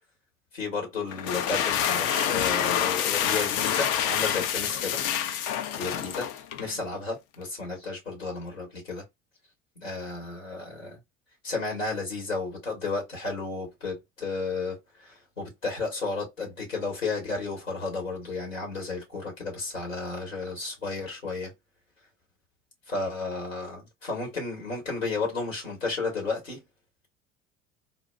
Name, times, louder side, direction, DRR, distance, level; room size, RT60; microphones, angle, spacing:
voice 1, 0.5-5.0 5.8-6.3 6.6-9.0 9.8-11.0 11.4-21.5 22.9-26.6, left 3 dB, 85° left, 1.6 m, -33 dB
sound 1, 1.1-6.7, left 9 dB, 55° left, 0.6 m, -27 dB
3.9 x 2.2 x 2.2 m
figure-of-eight pair, 65°, 37 cm